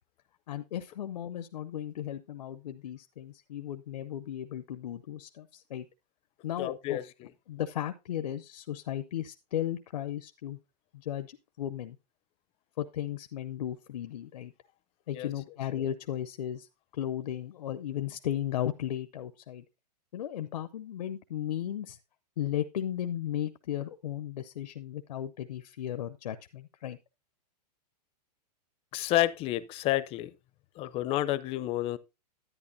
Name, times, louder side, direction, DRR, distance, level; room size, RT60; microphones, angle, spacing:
voice 1, 0.5-5.9 6.4-7.0 7.5-10.6 10.9-12.0 12.8-14.5 15.1-16.7 16.9-19.6 20.1-22.0 22.4-27.0, left 11 dB, 75° left, 0.7 m, -35 dB
voice 2, 6.6-7.3 15.1-15.3 28.9-30.3 30.8-32.0, left 14 dB, 25° left, 0.5 m, -30 dB
11.0 x 9.5 x 2.6 m
hypercardioid pair, 135°, 21 cm